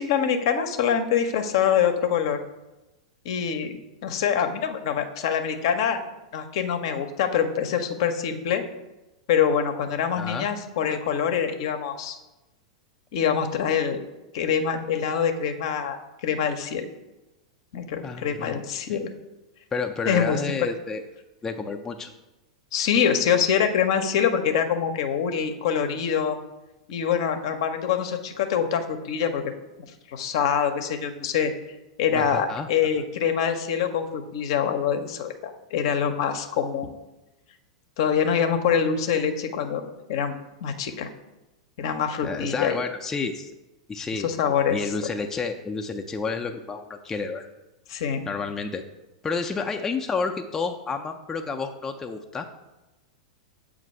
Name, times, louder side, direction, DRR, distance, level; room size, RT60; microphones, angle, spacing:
voice 1, 0.0-2.4 3.2-3.7 4.0-6.0 6.3-8.6 9.3-12.2 13.1-14.0 14.3-16.9 17.7-19.1 20.1-20.4 22.7-26.4 26.9-29.4 30.1-31.5 32.0-36.9 38.0-39.8 40.1-41.1 41.8-42.8 44.1-44.9 47.9-48.3, left 7 dB, 55° left, 7 dB, 0.6 m, -25 dB
voice 2, 10.1-10.5 18.0-18.6 18.9-19.0 19.7-21.0 21.4-22.1 32.1-32.7 42.2-43.5 43.9-44.3 44.7-47.5 48.3-48.8 49.2-52.5, left 4 dB, 15° left, 3 dB, 0.4 m, -30 dB
7.3 x 2.5 x 5.3 m, 1.0 s
figure-of-eight pair, 95°, 3 cm